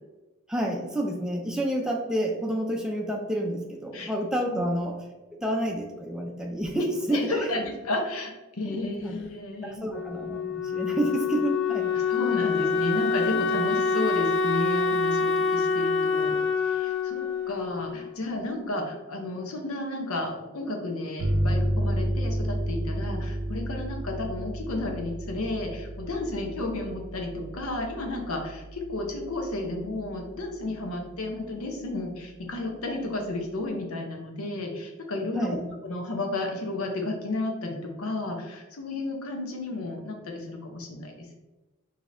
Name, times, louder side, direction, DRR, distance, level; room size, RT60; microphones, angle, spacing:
voice 1, 0.5-5.0 5.4-7.5 8.6-8.8 9.0-9.2 9.6-11.9 35.3-35.7, right 1 dB, 5° right, 0 dB, 0.5 m, -29 dB
voice 2, 6.8-9.8 12.1-16.4 16.6-35.6 35.8-41.3, left 2 dB, 80° left, 2 dB, 0.8 m, -32 dB
Wind instrument woodwind instrument, 9.9-18.6, left 4 dB, 55° left, 0.3 m, -26 dB
sound 1, 21.2-30.5, right 1 dB, 70° right, 0.5 m, -31 dB
4.9 x 2.8 x 2.6 m, 1.1 s
head